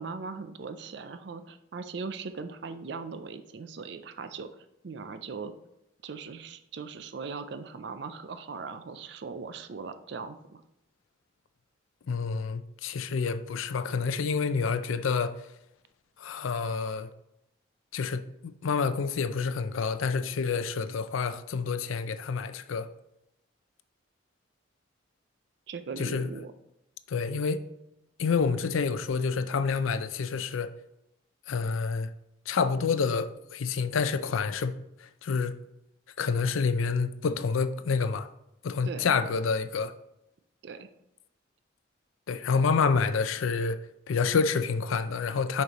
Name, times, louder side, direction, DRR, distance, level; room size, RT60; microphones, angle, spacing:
voice 1, 0.0-4.5 4.8-5.5 6.0-10.6 25.7-26.5 38.8-39.1 40.6-40.9, right 4 dB, 55° right, 0.4 m, -39 dB
voice 2, 12.1-15.3 16.2-17.1 17.9-22.9 26.0-26.3 27.1-27.6 28.2-30.7 31.5-32.1 32.5-34.7 35.2-35.5 36.2-38.3 38.6-39.9 42.3-43.8 44.1-45.6, left 5 dB, 80° left, 0.4 m, -28 dB
6.5 x 5.3 x 3.0 m
head